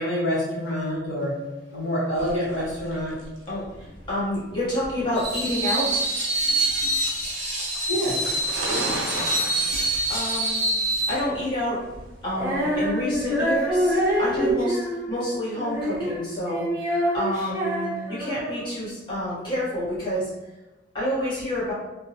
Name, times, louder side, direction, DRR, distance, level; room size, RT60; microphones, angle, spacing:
voice 1, 0.0-1.4 1.7-3.2 7.9-8.4, equal, 80° left, -7 dB, 1.2 m, -27 dB
sound 1, 2.2-14.5, right 1 dB, 70° right, 0.5 m, -38 dB
voice 2, 3.5-6.1 6.5-6.6 6.8-6.9 9.6-10.6 11.1-11.8 12.2-20.3 20.9-21.7, left 1 dB, 25° left, -10 dB, 0.9 m, -29 dB
Screech, 5.1-11.2, right 1 dB, 35° right, 0.9 m, -25 dB
Female singing, 12.3-18.8, equal, 15° right, 0.6 m, -26 dB
2.5 x 2.0 x 2.7 m, 1.1 s
head